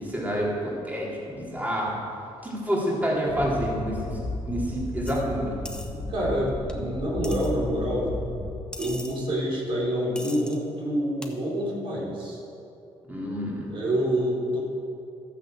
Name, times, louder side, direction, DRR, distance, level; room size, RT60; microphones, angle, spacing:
voice 1, 0.0-2.0 2.4-5.6 13.1-13.7, equal, 15° right, -5 dB, 3.7 m, -28 dB
sound 1, 3.3-8.5, left 2 dB, 35° left, 1.8 m, -34 dB
sound 2, 5.1-5.2 5.7-5.9 6.7-6.8 7.2-7.5 8.7-9.1 10.2-10.6 11.2-11.3, left 1 dB, 10° left, 1.5 m, -39 dB
voice 2, 5.9-8.1 8.8-12.4 13.7-14.6, equal, 50° right, -4 dB, 3.8 m, -27 dB
13.5 x 10.0 x 7.5 m, 2.7 s
cardioid pair, 105°, 11 cm